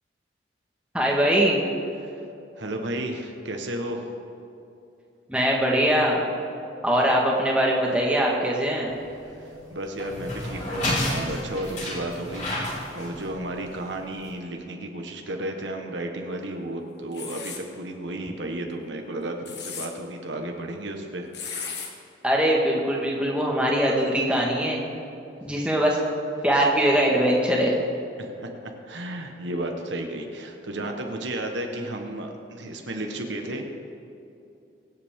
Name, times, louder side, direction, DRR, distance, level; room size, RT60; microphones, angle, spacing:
voice 1, 0.9-1.6 5.3-6.2 6.8-8.9 22.2-24.9 25.4-26.0 26.4-27.7, equal, 5° right, -3 dB, 1.6 m, -22 dB
voice 2, 2.6-4.1 9.4-21.3 28.2-33.7, right 1 dB, 75° right, 3 dB, 1.3 m, -33 dB
sound 1, 8.9-14.3, left 1 dB, 40° left, 3.2 m, -31 dB
sound 2, 17.1-17.6 19.2-19.9 21.3-21.9, left 6 dB, 60° left, 1.5 m, -35 dB
23.5 x 8.3 x 3.7 m, 2.7 s
head